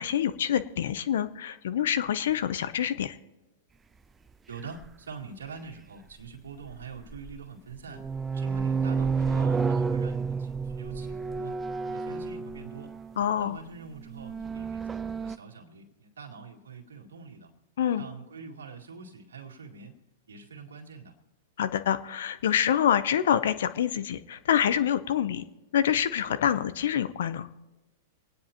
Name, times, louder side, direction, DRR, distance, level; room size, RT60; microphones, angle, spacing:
voice 1, 0.0-3.2 13.2-13.6 17.8-18.0 21.6-25.4 25.7-27.5, left 9 dB, 70° left, 13 dB, 0.7 m, -26 dB
voice 2, 4.5-8.0 8.3-11.6 11.8-12.9 13.4-17.5 18.0-20.0 20.3-21.2, right 5 dB, 80° right, 0 dB, 2.2 m, -44 dB
sound 1, 4.8-4.9 6.6-7.4 7.7-13.2 14.0-15.4, right 5 dB, 15° right, 0.4 m, -30 dB
25.5 x 9.5 x 3.0 m, 1.1 s
hypercardioid pair, 110°, 0 cm